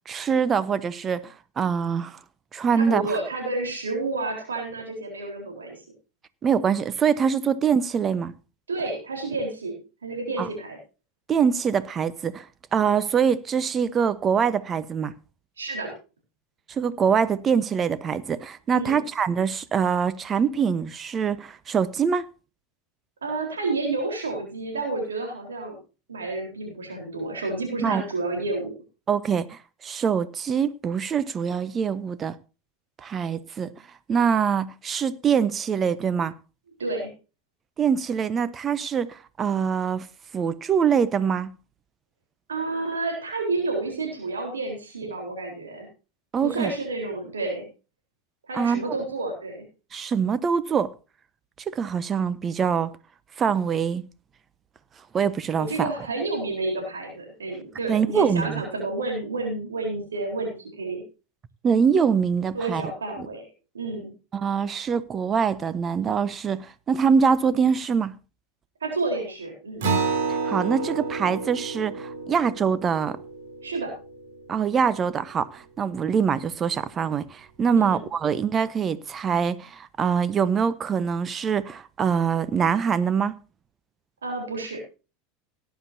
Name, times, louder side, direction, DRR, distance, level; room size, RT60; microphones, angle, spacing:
voice 1, 0.1-2.2 2.5-3.1 6.4-8.3 10.4-10.5 11.3-12.4 12.7-15.1 16.7-22.3 27.8-28.0 29.1-32.4 33.0-33.7 34.1-36.3 37.8-40.1 40.3-41.5 46.3-46.7 48.5-48.9 49.9-50.9 51.7-52.9 53.4-54.0 55.1-55.9 57.9-58.6 61.6-62.8 63.2-63.3 64.3-68.1 70.3-73.2 74.5-83.3, right 6 dB, 30° right, 1.0 m, -24 dB
voice 2, 2.7-5.8 8.7-9.7 10.0-10.8 15.6-15.9 18.7-19.0 23.2-25.8 26.1-28.7 36.8-37.1 42.5-45.9 46.4-47.6 48.5-49.6 55.6-61.0 62.5-63.4 63.7-64.1 68.8-69.9 73.6-73.9 77.7-78.0 84.2-84.8, right 3 dB, 85° right, 4.0 m, -30 dB
Acoustic guitar, 69.8-74.7, right 4 dB, 70° right, 3.9 m, -30 dB
17.5 x 10.5 x 2.7 m
hypercardioid pair, 90°, 0 cm